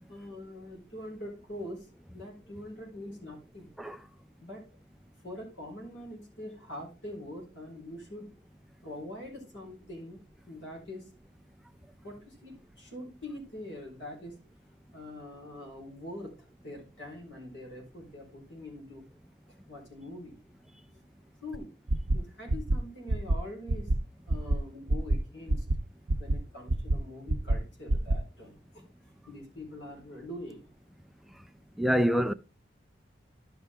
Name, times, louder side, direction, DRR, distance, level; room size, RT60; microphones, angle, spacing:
voice 1, 0.1-1.9 2.1-3.7 4.4-4.6 5.2-8.3 8.8-11.1 12.0-14.3 14.9-19.0 19.7-20.4 21.4-21.7 22.1-23.9 24.3-25.6 26.2-28.8 29.3-30.7, left 1 dB, 80° left, 4.2 m, -44 dB
sound 1, 21.5-21.6 21.9-22.2 22.5-22.8 23.1-23.4 23.7-24.0 24.3-24.6 24.9-25.2 25.5-25.8 26.1-26.4 26.7-27.0 27.3-27.6 27.9-28.2, right 1 dB, 65° right, 0.7 m, -25 dB
voice 2, 31.8-32.3, equal, ahead, 0.3 m, -25 dB
11.5 x 5.6 x 3.5 m
head